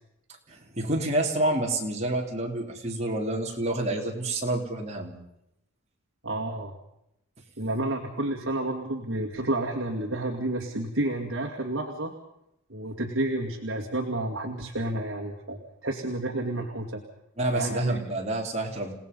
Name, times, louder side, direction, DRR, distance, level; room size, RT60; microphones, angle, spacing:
voice 1, 0.5-5.1 17.4-18.9, right 1 dB, 30° right, 0 dB, 3.6 m, -28 dB
voice 2, 6.2-6.7 7.6-12.1 12.7-17.0 17.5-18.0, right 1 dB, 60° right, 0 dB, 2.3 m, -30 dB
29.5 x 17.5 x 5.5 m, 0.81 s
head